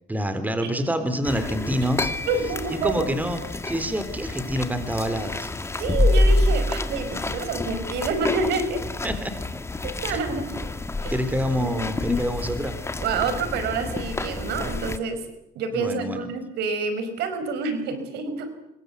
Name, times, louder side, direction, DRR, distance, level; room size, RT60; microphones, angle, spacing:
voice 1, 0.1-2.1 2.8-5.5 7.1-7.2 9.0-9.3 10.1-10.2 11.1-12.8 15.7-16.3, equal, 10° right, 10 dB, 3.5 m, -27 dB
sound 1, 1.3-15.0, left 2 dB, 15° left, 1.8 m, -27 dB
voice 2, 2.3-3.2 5.8-8.8 9.8-10.6 11.0-11.1 11.6-11.8 13.0-15.2 15.6-18.5, right 4 dB, 80° right, 10 dB, 5.0 m, -28 dB
25.5 x 22.0 x 8.2 m, 0.83 s
cardioid pair, 110°, 17 cm